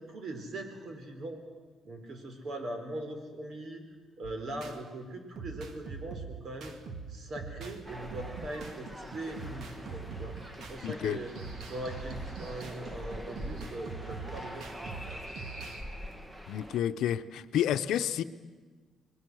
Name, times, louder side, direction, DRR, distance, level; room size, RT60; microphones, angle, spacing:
voice 1, 0.0-1.4 1.8-3.8 4.2-6.7 7.1-11.3 11.7-15.2, right 1 dB, 55° right, 5 dB, 4.5 m, -41 dB
sound 1, 4.2-4.8 5.4-7.8 8.1-15.8, right 5 dB, 70° right, 2.3 m, -43 dB
sound 2, 7.9-16.8, equal, 15° right, 1.8 m, -44 dB
voice 2, 10.8-11.2 16.5-18.2, left 10 dB, 80° left, 11 dB, 0.8 m, -30 dB
27.0 x 21.0 x 6.4 m, 1.4 s
cardioid pair, 90°, 0 cm